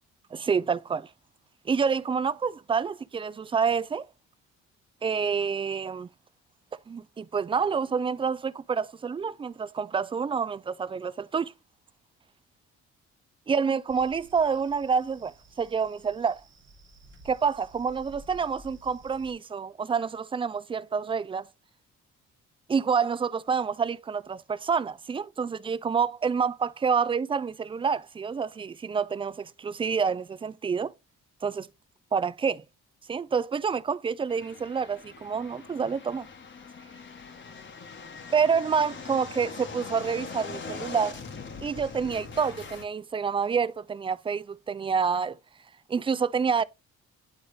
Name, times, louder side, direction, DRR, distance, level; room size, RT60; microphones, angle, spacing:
voice 1, 0.3-1.1 1.7-4.1 5.0-6.1 6.9-11.5 13.5-16.4 17.3-21.5 22.7-30.9 31.4-31.7 32.1-32.6 33.1-36.3 38.3-41.2 41.6-45.4 45.9-46.6, right 6 dB, 20° right, 0.3 m, -28 dB
sound 1, 13.9-19.3, right 2 dB, 40° right, 1.3 m, -53 dB
sound 2, 34.3-42.9, left 5 dB, 40° left, 1.1 m, -42 dB
9.4 x 3.9 x 3.2 m
cardioid pair, 90°, 30 cm